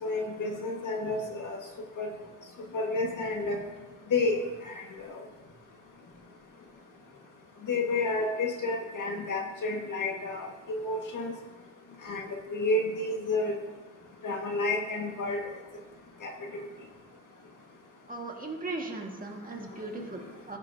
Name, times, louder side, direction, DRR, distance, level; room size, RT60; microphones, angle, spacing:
voice 1, 0.0-1.6 2.0-2.1 2.7-3.6 4.1-4.4 4.7-5.2 7.7-11.3 12.1-12.2 12.5-13.5 14.2-15.4 16.2-16.3, left 2 dB, 60° left, 1 dB, 1.8 m, -30 dB
voice 2, 18.1-20.6, right 2 dB, 25° right, 1 dB, 1.8 m, -38 dB
14.5 x 7.9 x 2.8 m, 1.2 s
cardioid pair, 70°, 35 cm